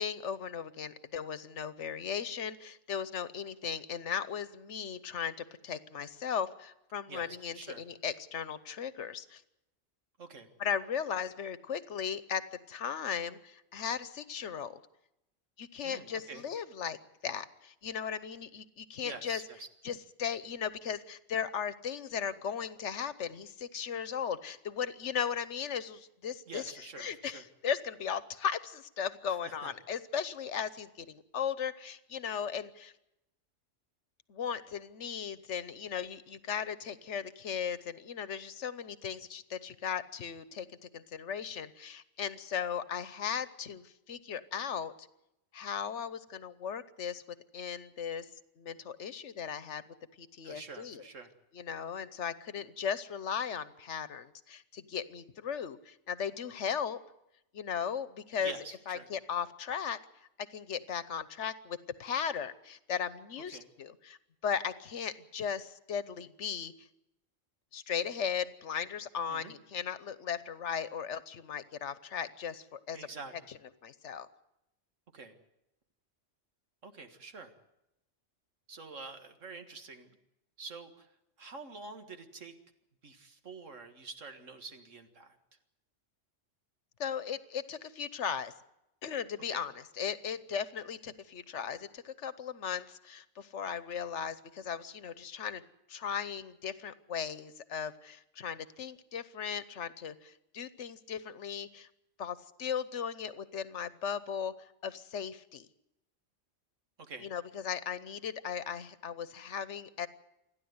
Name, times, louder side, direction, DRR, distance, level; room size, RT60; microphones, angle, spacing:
voice 1, 0.0-9.4 10.6-14.8 15.6-17.0 17.2-19.4 19.8-32.9 34.3-45.1 45.5-47.2 47.5-48.3 48.6-49.8 50.2-51.0 51.5-57.0 57.5-58.5 58.9-60.0 60.4-64.2 64.4-66.7 67.7-73.1 73.8-74.3 87.0-88.5 89.0-95.6 95.9-101.9 102.2-104.5 104.8-105.7 107.2-110.1, left 7 dB, 70° left, 15 dB, 1.2 m, -37 dB
voice 2, 7.1-7.8 10.2-10.5 15.8-16.4 19.0-19.7 26.5-27.4 29.3-29.7 50.4-51.3 58.4-59.1 63.5-63.7 69.3-69.5 72.9-73.3 75.1-75.3 76.8-77.5 78.7-80.2 80.6-81.1 81.4-82.5 83.0-85.4 89.5-89.6 107.0-107.3, right 4 dB, 80° right, 6 dB, 2.2 m, -47 dB
28.0 x 11.0 x 9.5 m, 0.86 s
omnidirectional pair, 1.3 m